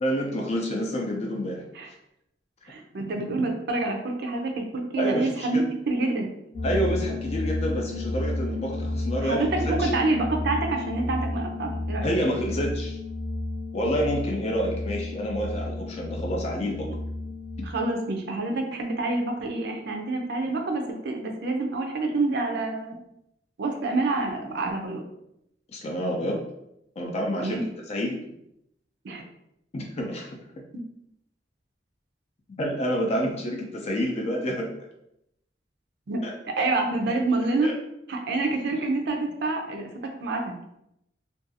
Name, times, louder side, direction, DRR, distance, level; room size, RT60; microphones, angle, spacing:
voice 1, 0.0-1.6 5.0-5.7 6.6-9.9 12.0-13.0 13.7-16.9 17.6-17.7 25.7-26.4 27.0-27.6 27.9-28.2 29.7-30.4 32.5-34.7 36.2-36.7 37.6-37.7, equal, 35° left, -1 dB, 0.4 m, -28 dB
voice 2, 2.6-6.3 9.2-12.1 17.6-23.0 23.6-25.0 27.4-27.7 29.0-29.2 36.1-37.7 38.1-40.6, right 2 dB, 65° right, 3 dB, 0.5 m, -27 dB
sound 1, 6.5-17.7, left 2 dB, 70° left, 0.8 m, -31 dB
2.6 x 2.3 x 2.6 m, 0.80 s
head